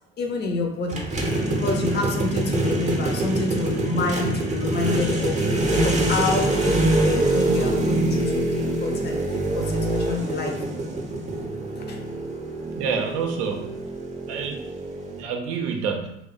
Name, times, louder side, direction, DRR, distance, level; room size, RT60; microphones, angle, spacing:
voice 1, 0.2-1.1 1.5-5.4 5.8-10.6 11.7-12.0, left 3 dB, 35° left, 3 dB, 0.5 m, -28 dB
sound 1, 0.9-15.2, right 1 dB, 25° right, 0.6 m, -25 dB
voice 2, 12.8-13.8 14.3-14.6 15.2-16.2, right 6 dB, 75° right, 4 dB, 0.5 m, -28 dB
2.6 x 2.1 x 2.4 m, 0.77 s
hypercardioid pair, 55°, 29 cm